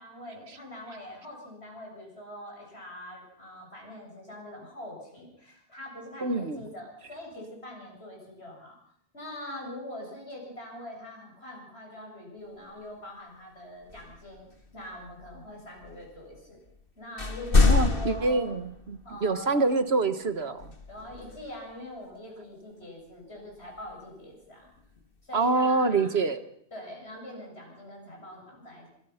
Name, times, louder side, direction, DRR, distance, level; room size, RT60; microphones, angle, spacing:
voice 1, 0.0-8.8 9.1-14.5 14.7-16.6 17.0-18.5 19.0-19.8 20.9-24.7 25.2-26.1 26.7-28.9, left 1 dB, 85° left, 0 dB, 8.1 m, -43 dB
voice 2, 6.2-6.6 17.6-20.7 25.3-26.4, right 3 dB, 75° right, 10 dB, 1.8 m, -26 dB
sound 1, 12.6-12.7 13.8-16.8 17.2-19.3 20.6-21.7 23.5-24.1 24.7-25.6, left 3 dB, 60° left, 2.1 m, -28 dB
26.0 x 25.0 x 5.8 m, 0.69 s
omnidirectional pair, 1.1 m